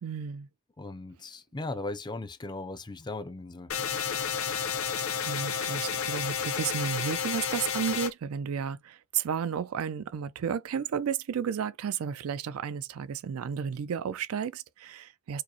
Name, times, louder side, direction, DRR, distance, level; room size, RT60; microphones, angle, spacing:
voice 1, 0.0-0.5 4.4-4.7 5.3-15.4, right 7 dB, 75° right, 0.4 m, -33 dB
voice 2, 0.8-3.7, left 2 dB, 20° left, 0.4 m, -37 dB
sound 1, 3.7-8.1, left 7 dB, 70° left, 0.8 m, -31 dB
4.7 x 2.0 x 2.8 m
head